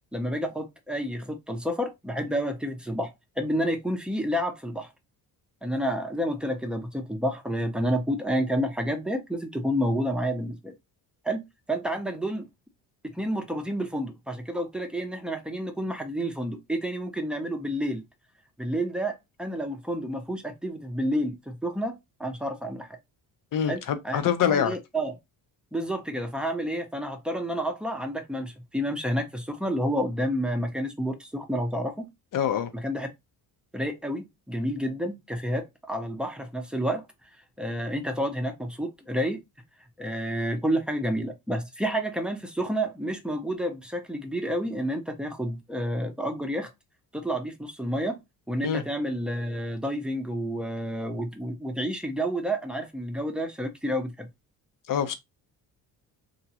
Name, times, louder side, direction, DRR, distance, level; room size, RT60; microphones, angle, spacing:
voice 1, 0.1-4.9 5.6-10.7 11.2-12.5 13.0-18.0 18.6-23.0 23.7-24.2 24.5-25.2 25.7-32.1 32.7-33.1 33.7-37.0 37.6-39.4 40.0-46.7 47.1-48.2 48.5-54.3, equal, ahead, 0.7 m, -30 dB
voice 2, 23.5-24.8 32.3-32.7 48.6-48.8 54.9-55.1, left 9 dB, 50° left, 0.6 m, -25 dB
2.9 x 2.4 x 2.8 m
cardioid pair, 90°, 42 cm